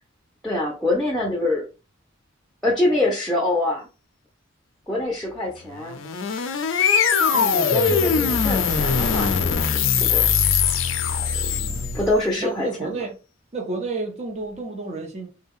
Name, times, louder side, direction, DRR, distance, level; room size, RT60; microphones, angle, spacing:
voice 1, 0.4-1.6 2.6-3.9 4.9-6.0 7.3-10.3 11.9-13.0, left 2 dB, ahead, 0.6 m, -25 dB
sound 1, 5.8-12.2, left 6 dB, 70° left, 0.5 m, -21 dB
voice 2, 11.5-12.0 12.4-13.1 13.5-15.3, right 3 dB, 35° right, 0.8 m, -31 dB
3.4 x 2.3 x 3.5 m
head